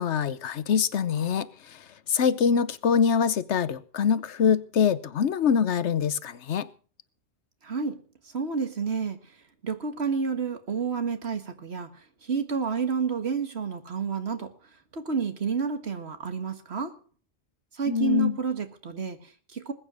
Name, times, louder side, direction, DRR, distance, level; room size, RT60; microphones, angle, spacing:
voice 1, 0.0-1.8 2.1-6.7 17.9-18.4, left 7 dB, 90° left, 1.2 m, -24 dB
voice 2, 7.6-9.2 9.6-14.5 14.9-17.0 17.7-19.7, right 5 dB, 70° right, 1.9 m, -30 dB
20.5 x 8.7 x 6.4 m
omnidirectional pair, 1.1 m